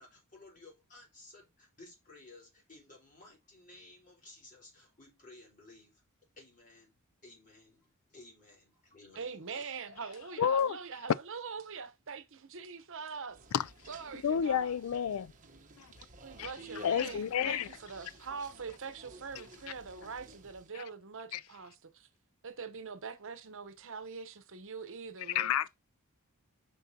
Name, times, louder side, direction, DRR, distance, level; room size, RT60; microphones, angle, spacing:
voice 1, 0.0-6.0 6.4-10.0, left 2 dB, 40° left, 4.3 m, -56 dB
voice 2, 9.1-13.4 13.9-14.8 16.2-22.1 22.4-25.5, right 5 dB, 65° right, 0.9 m, -43 dB
voice 3, 10.4-10.8 13.5-13.7 14.2-15.3 15.8-15.9 16.4-16.5 16.8-17.7 20.7-20.8 21.3-21.4 25.3-25.7, left 8 dB, 65° left, 0.4 m, -30 dB
sound 1, 13.3-20.7, right 2 dB, 35° right, 1.0 m, -53 dB
8.0 x 5.4 x 2.8 m
head